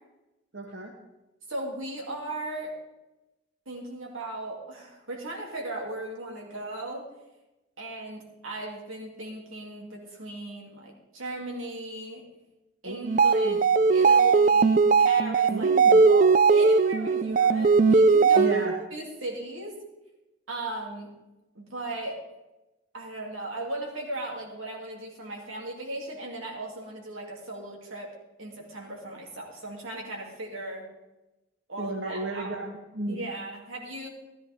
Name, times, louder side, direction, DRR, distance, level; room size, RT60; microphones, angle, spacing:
voice 1, 0.5-0.9 12.8-13.0 13.4-13.6 15.5-16.0 18.3-18.7 31.8-33.2, right 2 dB, 55° right, 1 dB, 1.1 m, -33 dB
voice 2, 1.5-2.8 3.7-7.1 7.8-12.2 12.8-15.8 16.1-18.5 18.9-19.7 20.5-21.1 21.5-22.2 22.9-30.9 31.7-32.6 33.1-34.1, right 2 dB, 80° right, -1 dB, 3.0 m, -37 dB
sound 1, 13.0-18.8, right 4 dB, 40° right, 0.4 m, -19 dB
14.0 x 13.0 x 3.7 m, 1.0 s
head